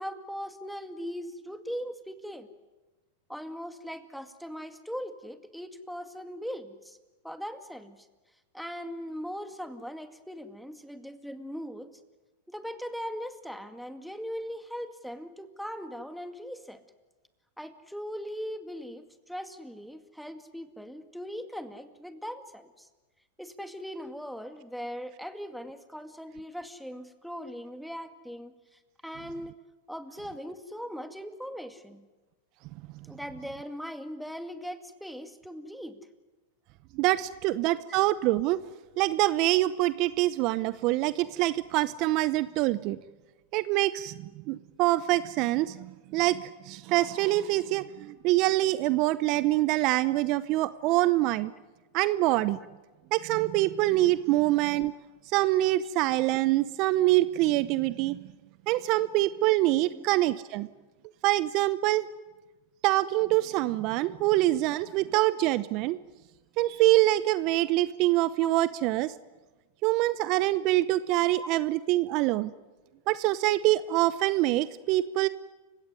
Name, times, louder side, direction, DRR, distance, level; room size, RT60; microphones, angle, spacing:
voice 1, 0.0-2.5 3.3-7.0 7.2-8.1 8.5-12.0 12.5-16.8 17.6-22.9 23.4-29.6 29.9-32.1 33.1-36.1 37.9-38.0 45.7-45.9 56.5-56.6 59.9-60.0 68.4-68.5 71.4-71.5, equal, ahead, 8 dB, 2.2 m, -40 dB
voice 2, 36.9-38.6 39.0-43.0 43.5-44.1 44.5-51.5 51.9-52.6 53.1-54.9 55.3-58.2 58.7-60.7 61.2-62.1 62.8-66.0 66.6-69.1 69.8-72.5 73.1-75.3, right 17 dB, 50° right, 16 dB, 0.8 m, -25 dB
29.5 x 17.0 x 9.8 m, 1.2 s
hypercardioid pair, 100°, 0 cm